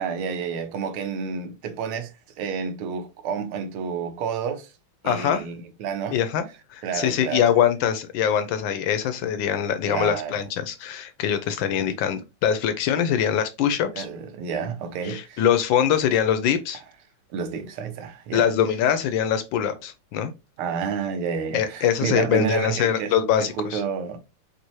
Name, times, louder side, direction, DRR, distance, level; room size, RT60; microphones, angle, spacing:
voice 1, 0.0-2.1 2.4-4.7 5.0-6.2 6.8-7.5 9.9-10.3 13.9-15.4 17.3-18.5 20.6-23.1 23.4-24.2, right 6 dB, 85° right, 1.6 m, -30 dB
voice 2, 5.0-5.4 6.1-6.4 6.7-14.1 15.0-16.8 18.3-20.3 21.5-23.8, left 9 dB, 75° left, 1.2 m, -23 dB
5.3 x 2.7 x 3.0 m
omnidirectional pair, 2.3 m